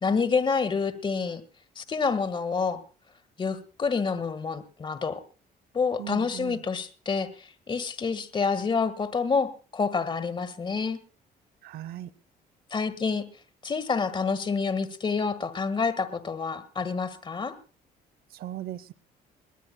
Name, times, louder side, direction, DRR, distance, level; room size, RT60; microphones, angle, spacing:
voice 1, 0.0-1.4 1.8-2.8 3.4-5.2 5.7-11.0 12.7-13.2 13.6-17.5, left 5 dB, 30° left, 1.6 m, -28 dB
voice 2, 6.0-6.6 11.6-12.1 18.3-18.9, right 13 dB, 65° right, 0.8 m, -38 dB
21.5 x 18.5 x 2.2 m
cardioid pair, 110°, 17 cm